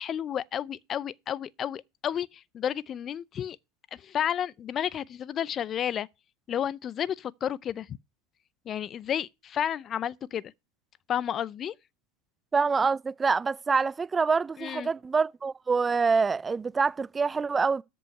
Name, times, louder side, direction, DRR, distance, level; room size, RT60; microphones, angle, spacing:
voice 1, 0.0-3.6 4.0-6.1 6.5-7.9 8.7-10.4 11.1-11.7 14.6-14.9, left 9 dB, 35° left, 0.5 m, -31 dB
voice 2, 12.5-17.8, right 5 dB, 20° right, 0.5 m, -26 dB
13.5 x 5.4 x 5.4 m
hypercardioid pair, 95°, 0 cm